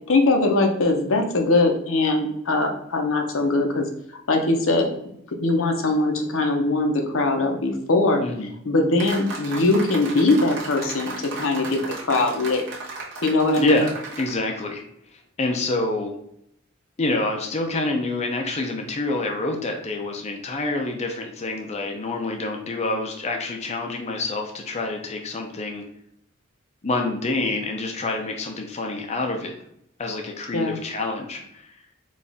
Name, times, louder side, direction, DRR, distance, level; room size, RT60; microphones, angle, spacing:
voice 1, 0.1-3.9 4.3-4.9 5.4-8.2 8.7-12.6 13.2-13.8 30.5-30.8, left 2 dB, 70° left, 3 dB, 0.8 m, -21 dB
voice 2, 8.2-8.5 13.6-13.9 14.2-14.8 15.4-16.2 17.0-25.8 26.8-29.6 30.0-31.8, left 2 dB, 30° left, 2 dB, 0.5 m, -27 dB
sound 1, 9.0-14.4, right 3 dB, 60° right, 1.1 m, -35 dB
4.2 x 2.4 x 3.5 m, 0.75 s
head